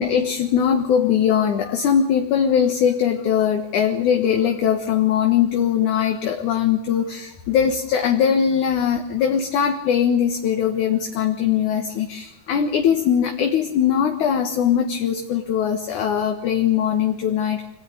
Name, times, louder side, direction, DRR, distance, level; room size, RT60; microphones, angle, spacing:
voice 1, 0.0-17.7, left 8 dB, 65° left, 4 dB, 2.6 m, -21 dB
26.0 x 18.0 x 9.5 m, 0.82 s
omnidirectional pair, 4.2 m